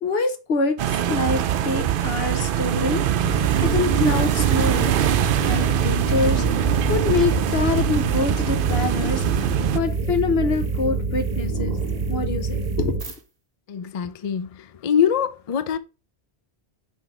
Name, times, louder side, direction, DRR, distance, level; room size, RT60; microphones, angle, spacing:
voice 1, 0.0-3.1 3.6-5.0 5.4-11.8 12.1-13.1, left 4 dB, 70° left, 1.2 m, -25 dB
sound 1, 0.8-9.8, right 10 dB, 60° right, 0.6 m, -23 dB
sound 2, 3.1-13.2, right 4 dB, 35° right, 1.0 m, -26 dB
sound 3, 6.0-11.1, right 1 dB, 20° left, 1.1 m, -34 dB
voice 2, 13.7-15.8, left 8 dB, 50° left, 0.4 m, -24 dB
6.0 x 3.4 x 4.9 m
omnidirectional pair, 1.1 m